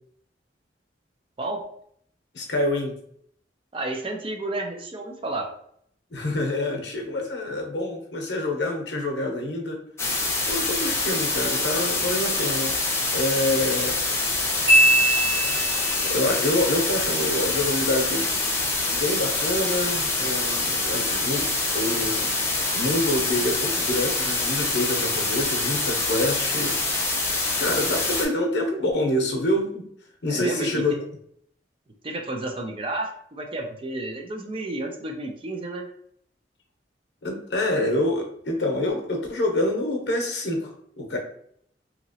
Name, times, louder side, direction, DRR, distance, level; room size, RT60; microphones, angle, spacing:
voice 1, 2.3-3.0 6.1-9.8 10.5-12.7 13.1-15.2 15.8-18.3 18.9-22.3 22.7-26.8 27.6-29.9 30.2-31.0 37.2-41.2, left 1 dB, 70° left, 2 dB, 0.7 m, -27 dB
voice 2, 3.7-5.5 30.3-30.8 32.0-35.9, right 2 dB, 30° right, 3 dB, 0.4 m, -31 dB
sound 1, 10.0-28.2, left 2 dB, 15° left, 0.6 m, -25 dB
Marimba xylophone, 14.7-16.1, right 1 dB, 60° right, 1.4 m, -20 dB
2.9 x 2.8 x 2.7 m, 0.65 s
head